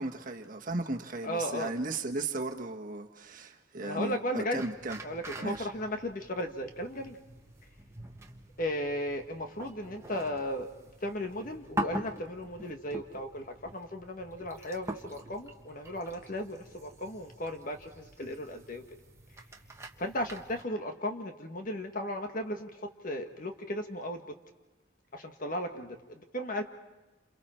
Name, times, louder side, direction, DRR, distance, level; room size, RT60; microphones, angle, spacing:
voice 1, 0.0-5.0 5.4-5.7, right 2 dB, 45° right, 1.5 m, -36 dB
voice 2, 1.2-1.7 3.8-4.6 5.0-7.2 8.6-10.7 11.0-18.8 20.0-24.2 25.1-26.6, left 1 dB, 45° left, 1.7 m, -36 dB
sound 1, 4.6-20.6, right 1 dB, 15° right, 1.4 m, -44 dB
29.0 x 28.0 x 4.5 m
head